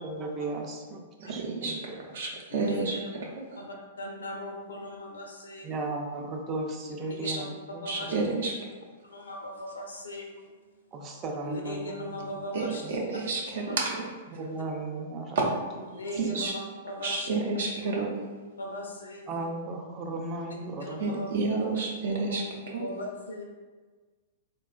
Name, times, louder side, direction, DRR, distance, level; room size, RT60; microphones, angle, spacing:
voice 1, 0.0-2.0 5.6-8.4 10.9-12.5 12.8-13.0 14.4-15.5 15.7-16.4 17.1-17.3 19.3-21.3, right 2 dB, 30° right, 1 dB, 0.5 m, -36 dB
voice 2, 1.2-1.7 2.1-3.7 7.2-7.4 7.9-8.5 12.5-14.0 15.4-15.5 16.2-16.5 17.0-18.1 21.0-22.4 22.7-22.8, right 3 dB, 70° right, -2 dB, 0.7 m, -30 dB
voice 3, 2.5-3.1 3.6-3.7 4.0-5.7 7.1-7.3 7.8-8.1 9.0-10.3 11.4-12.8 13.7-13.8 15.9-17.3 18.6-19.2 20.8-21.3 22.3-22.4 22.8-23.4, left 1 dB, 80° left, 0 dB, 0.6 m, -38 dB
3.5 x 2.3 x 2.3 m, 1.4 s
hypercardioid pair, 110°, 0 cm